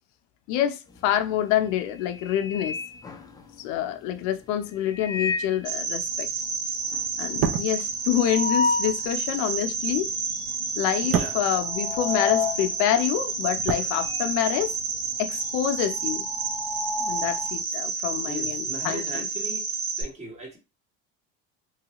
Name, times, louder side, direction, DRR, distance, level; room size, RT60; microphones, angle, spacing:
voice 1, 0.5-2.8 3.6-6.3 7.2-10.1 10.8-14.7 15.2-16.2 17.0-19.2, left 11 dB, 70° left, 0.5 m, -27 dB
sound 1, 1.0-1.3 1.7-3.8 4.8-5.7 6.1-6.2 6.4-6.5 6.9-9.1 9.5-9.6 10.4-10.8 11.0-14.3 14.6-17.6, left 4 dB, 15° left, 0.4 m, -31 dB
Cricket, 5.6-20.0, right 4 dB, 70° right, 1.6 m, -30 dB
sound 2, 7.2-12.5 12.8-14.6 14.9-15.1, right 7 dB, 50° right, 0.5 m, -32 dB
voice 2, 18.2-19.7 20.0-20.6, right 1 dB, 20° right, 1.1 m, -38 dB
3.2 x 2.3 x 2.8 m
cardioid pair, 135°, 30 cm